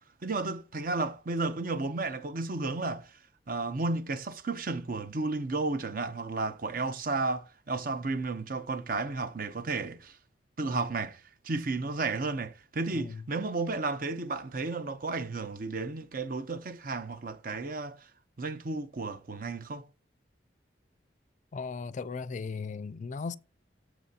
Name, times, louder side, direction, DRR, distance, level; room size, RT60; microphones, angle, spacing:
voice 1, 0.2-3.2 3.5-10.2 10.6-18.1 18.4-19.9, right 3 dB, 50° right, 0.7 m, -33 dB
voice 2, 21.5-23.4, left 4 dB, 45° left, 0.4 m, -37 dB
14.0 x 5.9 x 2.8 m
head